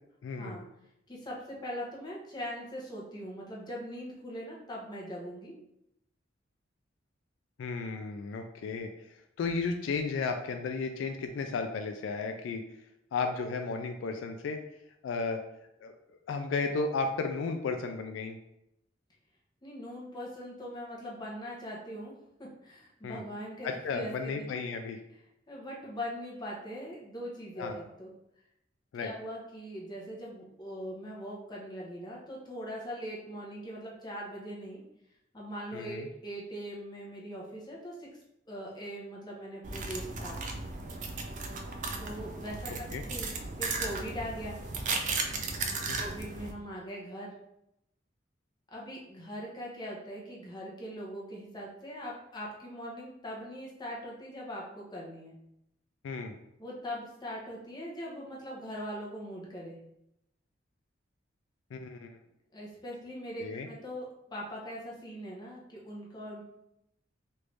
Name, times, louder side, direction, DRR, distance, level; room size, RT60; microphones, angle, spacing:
voice 1, 0.2-0.6 7.6-8.9 9.4-12.6 13.1-14.6 15.0-15.4 15.8-15.9 16.3-18.4 23.0-23.2 23.6-25.0 27.6-27.8 28.9-29.1 35.7-36.1 42.9-43.0 56.0-56.4 61.7-62.1 63.4-63.7, left 4 dB, 75° left, 5 dB, 0.3 m, -33 dB
voice 2, 1.1-5.6 19.6-22.1 22.6-24.4 25.1-25.2 25.5-28.1 28.9-34.8 35.3-38.1 38.5-40.6 42.0-43.3 43.6-44.6 46.0-47.3 48.7-55.4 56.6-59.8 62.5-66.4, equal, 20° left, -4 dB, 0.8 m, -41 dB
sound 1, 39.6-46.5, right 3 dB, 40° right, 0.4 m, -35 dB
3.2 x 2.5 x 3.2 m, 0.83 s
head